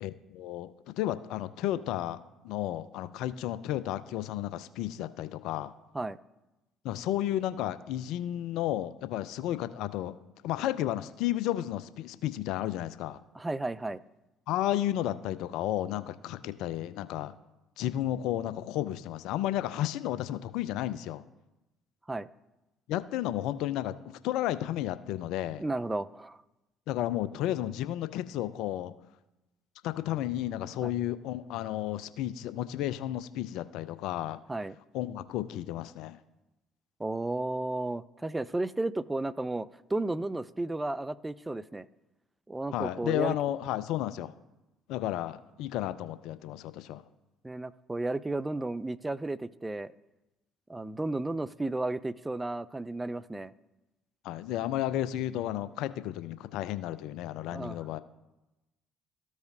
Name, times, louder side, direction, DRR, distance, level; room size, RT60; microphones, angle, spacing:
voice 1, 0.0-2.2 2.4-5.7 6.8-10.1 10.4-13.2 14.5-17.3 17.8-21.2 22.9-25.6 26.9-28.9 29.8-34.4 34.9-36.2 42.7-44.3 44.9-47.0 54.2-58.0, left 13 dB, 65° left, 13 dB, 0.4 m, -32 dB
voice 2, 13.3-14.0 22.1-22.3 25.6-26.4 30.8-30.9 34.5-34.8 37.0-41.9 42.5-43.4 47.4-49.9 50.7-53.5 57.5-57.8, right 2 dB, 15° right, 15 dB, 0.4 m, -33 dB
14.0 x 4.9 x 2.7 m, 1.0 s
hypercardioid pair, 55°, 0 cm